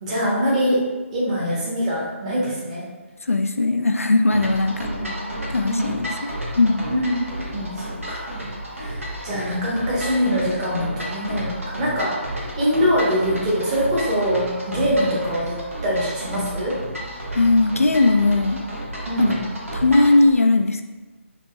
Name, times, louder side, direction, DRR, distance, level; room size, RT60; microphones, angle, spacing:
voice 1, 0.0-0.8 1.1-2.8 4.8-5.2 5.6-6.0 6.9-7.1 7.5-8.4 8.7-15.6 15.8-16.7 19.1-19.4, equal, 30° right, -6 dB, 1.3 m, -23 dB
voice 2, 3.2-4.9 5.5-6.9 17.3-18.6 19.2-19.4 19.7-20.8, left 2 dB, 80° left, 6 dB, 0.4 m, -19 dB
sound 1, 4.3-20.2, right 1 dB, 70° right, 1.2 m, -31 dB
4.1 x 2.9 x 3.4 m, 1.2 s
figure-of-eight pair, 145°, 7 cm